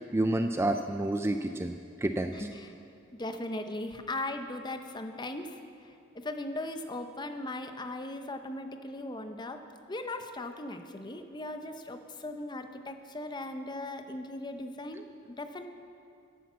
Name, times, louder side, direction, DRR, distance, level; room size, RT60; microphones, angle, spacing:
voice 1, 0.0-1.7 2.0-2.4, right 1 dB, 15° right, 6 dB, 0.3 m, -29 dB
voice 2, 2.3-2.7 3.2-9.6 9.9-15.7, left 2 dB, 20° left, 7 dB, 0.7 m, -38 dB
10.5 x 10.0 x 7.3 m, 2.4 s
head